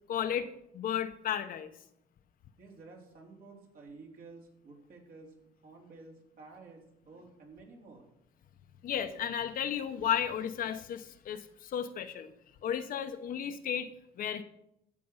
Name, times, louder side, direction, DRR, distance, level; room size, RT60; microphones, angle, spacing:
voice 1, 0.1-0.5 0.7-1.7 8.8-12.3 12.6-13.9 14.2-14.4, left 9 dB, 55° left, 9 dB, 0.9 m, -33 dB
voice 2, 2.6-5.4 5.6-8.1, right 3 dB, 60° right, 0 dB, 3.6 m, -52 dB
12.5 x 7.6 x 5.6 m, 0.81 s
cardioid pair, 110°, 17 cm